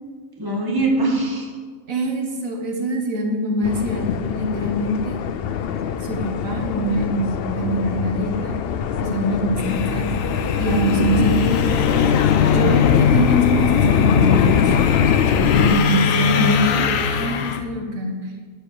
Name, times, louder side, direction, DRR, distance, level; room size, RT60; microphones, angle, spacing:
voice 1, 0.4-1.5 15.4-16.8, right 1 dB, 15° right, -1 dB, 1.6 m, -24 dB
voice 2, 1.9-5.2 6.1-8.6 9.0-10.1 10.6-11.8 12.4-14.7 15.6-16.9 17.2-18.2, right 1 dB, 90° right, 2 dB, 1.8 m, -24 dB
sound 1, 3.6-15.8, left 8 dB, 60° left, 0.7 m, -22 dB
sound 2, 9.6-17.6, left 7 dB, 80° left, 1.1 m, -22 dB
12.5 x 5.2 x 6.5 m, 1.5 s
omnidirectional pair, 1.4 m